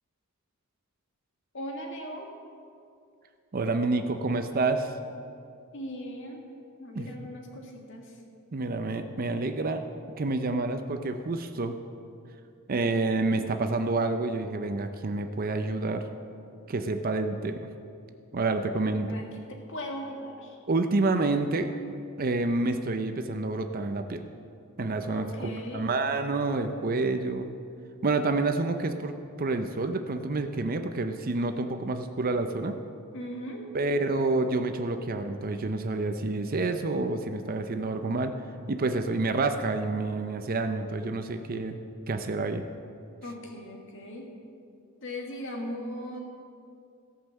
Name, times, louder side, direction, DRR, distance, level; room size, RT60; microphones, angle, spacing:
voice 1, 1.5-2.3 5.7-6.4 6.8-8.2 19.1-20.6 25.0-25.9 33.1-33.7 43.2-44.3 45.0-46.2, equal, 60° left, 1 dB, 1.8 m, -38 dB
voice 2, 3.5-5.0 7.0-7.3 8.5-9.8 10.2-11.7 12.7-16.0 16.7-17.6 18.3-19.2 20.7-21.7 22.2-24.3 24.8-27.5 28.0-32.8 33.7-38.3 38.7-41.8 42.1-42.6, right 3 dB, 40° right, 7 dB, 0.6 m, -28 dB
16.5 x 5.6 x 7.3 m, 2.4 s
head